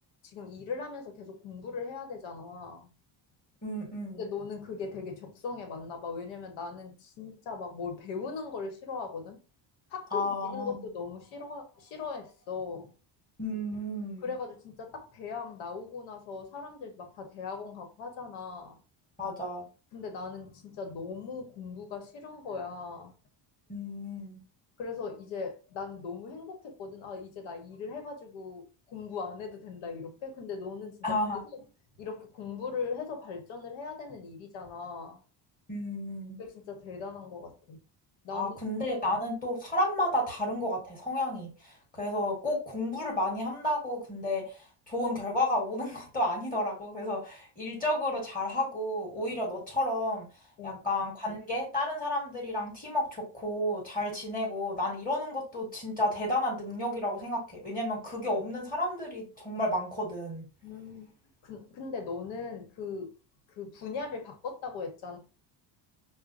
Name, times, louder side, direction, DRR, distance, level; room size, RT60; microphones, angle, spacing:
voice 1, 0.2-2.9 4.1-9.4 9.9-12.9 14.2-18.8 19.9-23.1 24.8-31.2 31.5-31.6 32.0-35.2 36.4-37.8 38.2-38.6 39.1-39.2 50.6-50.8 60.6-61.1 61.4-63.1 63.6-65.2, left 5 dB, 80° left, 1.3 m, -39 dB
voice 2, 3.6-4.2 10.1-10.8 13.4-14.3 19.2-19.6 23.7-24.4 31.0-31.4 35.7-36.4 38.3-50.3 50.6-60.4, left 1 dB, 20° left, 1.5 m, -32 dB
5.5 x 2.2 x 2.6 m
cardioid pair, 150°, 46 cm